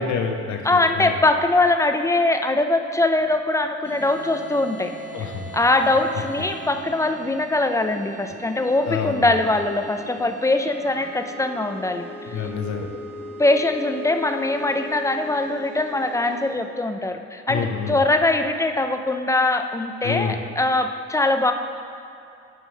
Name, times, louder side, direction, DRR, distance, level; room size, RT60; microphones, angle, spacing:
voice 1, 0.0-1.2 5.1-5.6 8.8-9.4 12.2-12.9 17.5-18.0 20.0-20.4, left 6 dB, 70° left, 3 dB, 0.8 m, -28 dB
voice 2, 0.7-4.9 5.5-12.0 13.4-21.5, left 2 dB, 10° left, 6 dB, 0.4 m, -22 dB
sound 1, 3.8-16.5, right 1 dB, 25° right, 1.2 m, -39 dB
9.2 x 3.1 x 5.2 m, 2.6 s
cardioid pair, 90°, 30 cm